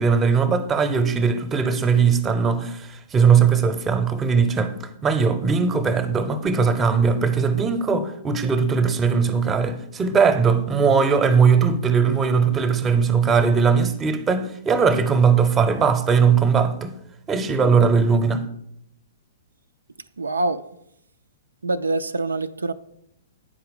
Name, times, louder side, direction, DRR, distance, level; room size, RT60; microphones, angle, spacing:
voice 1, 0.0-16.9 17.3-18.5, right 5 dB, 20° right, 0.7 m, -19 dB
voice 2, 20.2-20.6 21.6-22.7, right 2 dB, 85° right, 0.3 m, -24 dB
8.8 x 4.6 x 5.3 m
hypercardioid pair, 120°, 0 cm